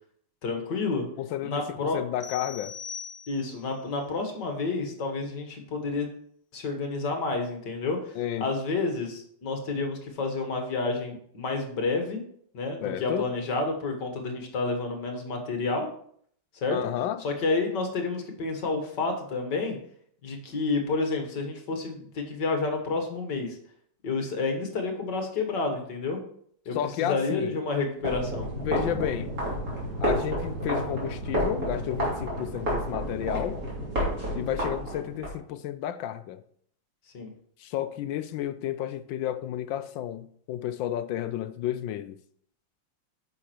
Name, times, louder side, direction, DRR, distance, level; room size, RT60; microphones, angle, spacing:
voice 1, 0.4-1.1 1.4-2.0 3.3-6.1 6.5-8.1 8.4-12.2 12.5-15.9 16.5-16.8 17.2-19.8 20.2-23.6 24.0-26.2 26.7-28.5 37.1-37.3, left 3 dB, 55° left, 1.9 m, -30 dB
voice 2, 1.2-2.7 8.2-8.5 12.8-13.3 16.7-17.2 26.7-27.6 28.6-29.3 30.0-33.6 34.3-36.4 37.6-42.2, left 11 dB, 75° left, 1.2 m, -31 dB
sound 1, 2.2-3.7, left 7 dB, 15° left, 1.0 m, -41 dB
sound 2, 28.0-35.3, equal, 40° right, 3.5 m, -30 dB
9.7 x 6.2 x 4.5 m
omnidirectional pair, 2.3 m